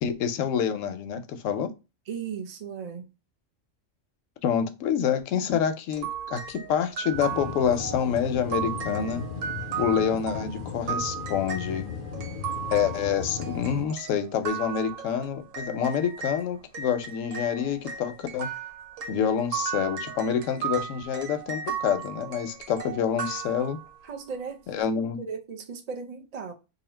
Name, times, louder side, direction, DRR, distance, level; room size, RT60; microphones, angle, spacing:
voice 1, 0.0-1.7 4.4-9.2 9.8-11.9 12.7-18.5 19.1-23.8 24.7-25.2, left 8 dB, 80° left, 0.9 m, -27 dB
voice 2, 2.1-3.1 24.0-26.5, right 6 dB, 50° right, 0.4 m, -37 dB
sound 1, 5.9-16.4 16.7-24.1, right 8 dB, 80° right, 1.1 m, -36 dB
sound 2, 7.1-13.8, left 6 dB, 60° left, 0.5 m, -36 dB
2.8 x 2.6 x 4.2 m
omnidirectional pair, 1.3 m